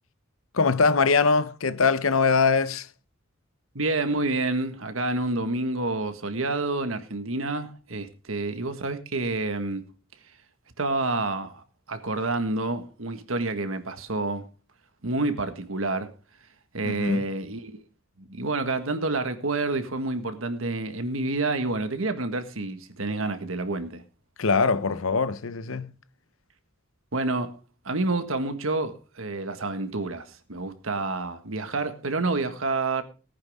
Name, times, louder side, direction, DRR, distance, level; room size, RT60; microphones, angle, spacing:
voice 1, 0.5-2.9 16.8-17.2 24.4-25.9, left 4 dB, 75° left, 0.8 m, -22 dB
voice 2, 3.7-9.9 10.8-14.5 15.0-16.1 16.7-17.8 18.3-24.0 27.1-27.5 27.8-33.0, right 2 dB, 75° right, 1.7 m, -28 dB
18.5 x 9.6 x 3.6 m
head